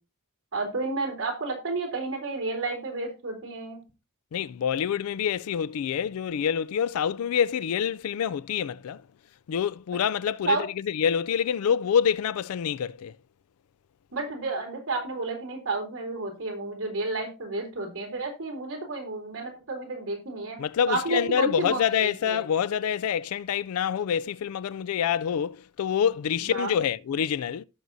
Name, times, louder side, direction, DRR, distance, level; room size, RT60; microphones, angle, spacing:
voice 1, 0.5-3.8 10.5-10.6 14.1-20.6 20.9-22.4 26.5-26.7, right 3 dB, 65° right, 3.9 m, -31 dB
voice 2, 4.3-9.0 9.5-13.1 20.6-27.6, left 8 dB, 80° left, 0.4 m, -26 dB
17.5 x 6.2 x 2.6 m
head